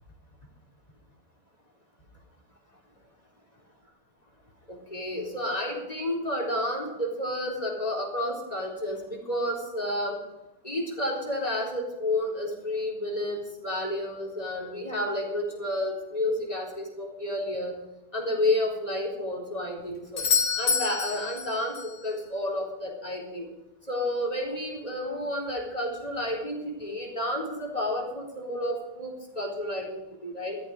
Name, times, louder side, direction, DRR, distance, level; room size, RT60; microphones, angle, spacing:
voice 1, 4.7-10.2 10.6-17.8 18.1-20.2 20.6-23.5 23.9-30.6, left 1 dB, 20° left, 0 dB, 3.9 m, -31 dB
Doorbell, 20.2-22.0 26.1-26.2, left 6 dB, 80° left, 2.5 m, -27 dB
15.0 x 13.5 x 4.8 m, 0.94 s
omnidirectional pair, 2.0 m